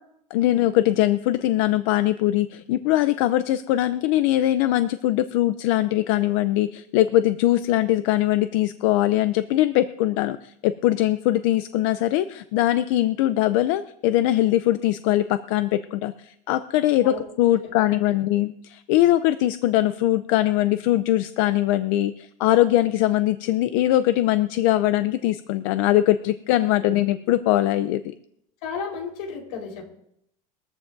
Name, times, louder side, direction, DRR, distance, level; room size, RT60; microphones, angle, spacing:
voice 1, 0.3-28.0, left 14 dB, 55° left, 12 dB, 0.6 m, -21 dB
voice 2, 28.6-30.0, left 5 dB, 75° left, 1 dB, 4.4 m, -34 dB
21.5 x 14.5 x 2.7 m, 0.74 s
supercardioid pair, 160°, 18 cm